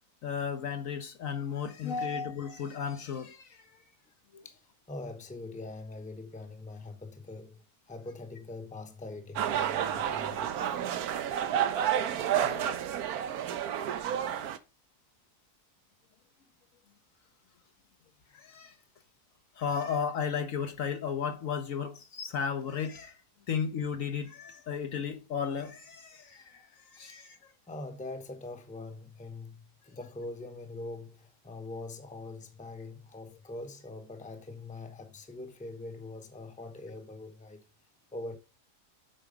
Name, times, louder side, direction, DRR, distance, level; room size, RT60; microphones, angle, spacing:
voice 1, 0.2-3.6 4.3-4.4 12.4-12.8 18.3-18.7 19.6-23.2 23.5-27.4, left 7 dB, 60° left, 1.1 m, -34 dB
voice 2, 4.4-10.6 27.1-27.2 27.7-37.6 38.1-38.4, left 2 dB, 5° left, 0.8 m, -43 dB
sound 1, 9.4-14.6, right 10 dB, 70° right, 1.2 m, -30 dB
8.0 x 4.7 x 5.1 m
omnidirectional pair, 1.7 m